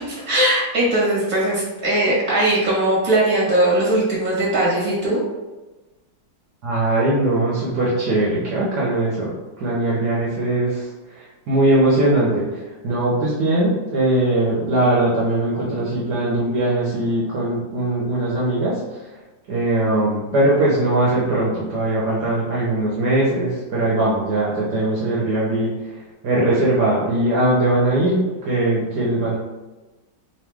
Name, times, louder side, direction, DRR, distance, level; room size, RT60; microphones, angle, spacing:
voice 1, 0.1-5.2, right 1 dB, 25° right, -7 dB, 1.4 m, -19 dB
voice 2, 6.6-9.3 9.6-10.8 11.5-12.5 12.8-18.8 19.5-25.7 26.2-29.4, right 1 dB, 65° right, -6 dB, 1.3 m, -20 dB
3.3 x 3.1 x 3.4 m, 1.1 s
omnidirectional pair, 2.0 m